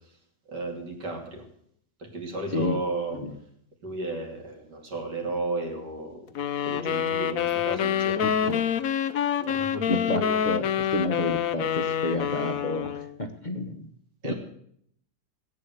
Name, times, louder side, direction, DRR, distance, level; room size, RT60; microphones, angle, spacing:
voice 1, 0.5-1.4 2.0-3.2 3.8-6.3 6.6-8.6 9.4-10.4 14.2-14.3, right 2 dB, 80° right, 2 dB, 3.4 m, -34 dB
sound 1, 6.4-13.2, left 9 dB, 60° left, 1.1 m, -27 dB
voice 2, 8.2-8.6 9.9-13.9 14.2-14.3, left 2 dB, 30° left, 5 dB, 1.1 m, -30 dB
17.0 x 8.9 x 8.0 m, 0.67 s
omnidirectional pair, 1.8 m